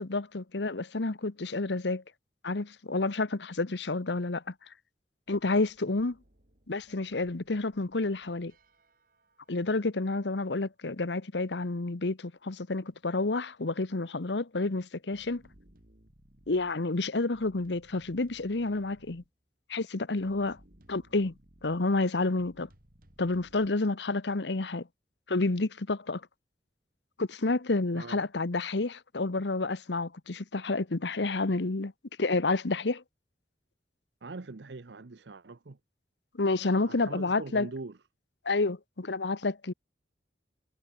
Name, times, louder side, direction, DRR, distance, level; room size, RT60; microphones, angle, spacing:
voice 1, 0.0-2.0 2.4-4.4 5.3-6.2 6.7-8.5 9.5-15.4 16.5-19.2 19.7-20.6 20.9-21.3 21.6-22.7 23.2-24.8 25.3-26.2 27.2-31.9 32.2-33.0 36.4-37.7 38.4-39.7, left 3 dB, 80° left, 1.1 m, -29 dB
sound 1, 5.3-10.2 12.9-13.0 13.2-13.3 15.1-16.8 17.3-19.3 20.2-21.8 22.4-23.7, equal, 55° right, 4.2 m, -61 dB
voice 2, 34.2-35.8 36.8-38.0, right 3 dB, 85° right, 0.8 m, -42 dB
head